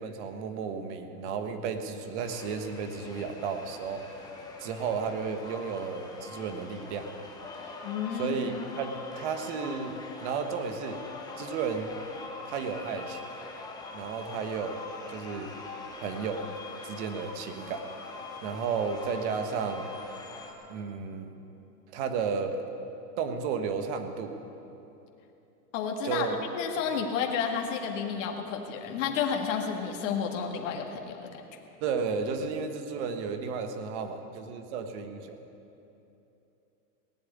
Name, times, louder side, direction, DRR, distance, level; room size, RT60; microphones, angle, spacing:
voice 1, 0.0-4.0 4.6-7.1 8.1-11.0 11.4-11.9 12.4-13.2 13.9-15.5 16.0-16.4 16.8-17.8 18.4-19.9 20.7-21.3 21.9-22.6 23.2-24.4 26.0-26.4 31.8-35.4, right 5 dB, 45° right, 7 dB, 1.4 m, -33 dB
sound 1, 2.2-20.5, left 3 dB, 10° left, 1.1 m, -43 dB
voice 2, 7.8-8.4 25.7-26.3 26.5-31.4, left 7 dB, 55° left, 2 dB, 1.9 m, -31 dB
18.5 x 7.7 x 9.5 m, 2.9 s
supercardioid pair, 160°, 46 cm